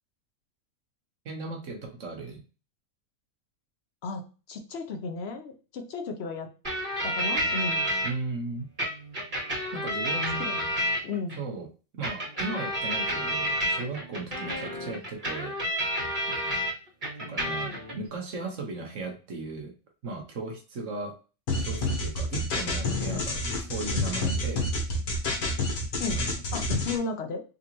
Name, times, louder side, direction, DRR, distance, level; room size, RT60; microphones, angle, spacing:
voice 1, 1.2-2.4 8.0-8.7 9.7-10.4 11.4-11.7 12.0-15.5 17.2-19.7 20.0-21.1 21.6-24.7 26.2-26.4, right 3 dB, 60° right, 3 dB, 1.2 m, -36 dB
voice 2, 4.5-6.5 7.0-7.9 10.4-10.7 11.0-11.4 16.3-16.6 26.0-26.3 26.5-27.4, left 4 dB, 55° left, 5 dB, 0.8 m, -34 dB
sound 1, 6.6-8.1 8.8-11.4 12.0-16.7 17.0-17.9, equal, 30° right, 2.1 m, -30 dB
sound 2, 21.5-27.0, left 2 dB, 70° left, 1.6 m, -28 dB
3.8 x 3.6 x 2.9 m, 0.34 s
omnidirectional pair, 1.6 m